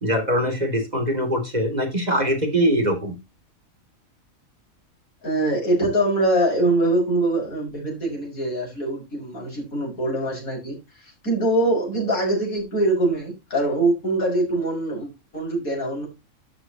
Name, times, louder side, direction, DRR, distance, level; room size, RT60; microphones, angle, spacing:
voice 1, 0.0-3.2, equal, 30° right, 3 dB, 3.2 m, -22 dB
voice 2, 5.2-10.8 11.2-16.1, right 1 dB, 80° left, -1 dB, 6.6 m, -23 dB
12.0 x 8.5 x 3.0 m, 0.25 s
omnidirectional pair, 1.5 m